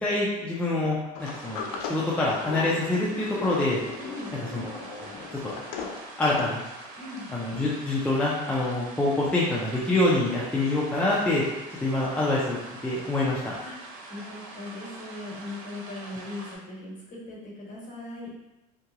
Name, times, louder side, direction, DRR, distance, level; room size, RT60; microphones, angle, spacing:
voice 1, 0.0-3.8 4.5-5.5 6.2-6.6 7.3-11.4 11.8-12.6 12.8-13.5, left 2 dB, 5° left, -7 dB, 0.5 m, -26 dB
Sliding door, 1.1-6.6, left 5 dB, 80° left, 0.5 m, -38 dB
sound 1, 1.2-16.6, right 2 dB, 80° right, 0.7 m, -44 dB
voice 2, 4.0-4.3 7.0-7.3 13.6-18.3, left 2 dB, 40° left, -5 dB, 1.3 m, -39 dB
2.8 x 2.3 x 2.8 m, 1.0 s
supercardioid pair, 110°, 19 cm